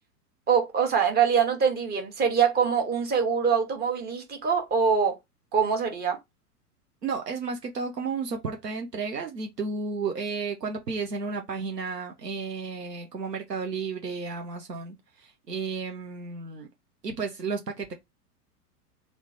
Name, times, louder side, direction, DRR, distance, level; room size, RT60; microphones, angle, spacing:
voice 1, 0.5-5.2 5.5-6.2, right 6 dB, 20° right, 1.1 m, -24 dB
voice 2, 7.0-16.7 17.0-17.9, right 4 dB, 85° right, 1.0 m, -33 dB
3.6 x 2.6 x 4.6 m
figure-of-eight pair, 100°, 47 cm